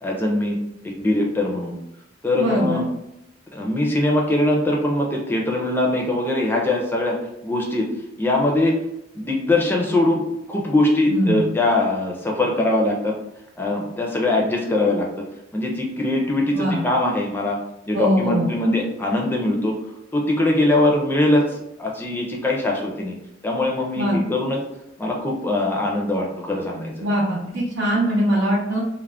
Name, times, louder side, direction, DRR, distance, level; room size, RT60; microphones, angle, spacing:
voice 1, 0.0-0.6 0.8-1.8 2.2-2.8 3.5-7.2 7.4-7.9 8.2-8.8 9.1-10.2 10.5-13.1 13.6-15.1 15.5-17.6 17.9-19.7 20.1-23.2 23.4-24.6 25.0-27.1, left 1 dB, 10° left, -1 dB, 0.5 m, -21 dB
voice 2, 2.4-2.9 11.1-11.5 16.5-16.8 17.9-18.5 24.0-24.2 27.0-28.8, equal, 90° right, -7 dB, 0.6 m, -22 dB
2.4 x 2.1 x 3.3 m, 0.84 s
head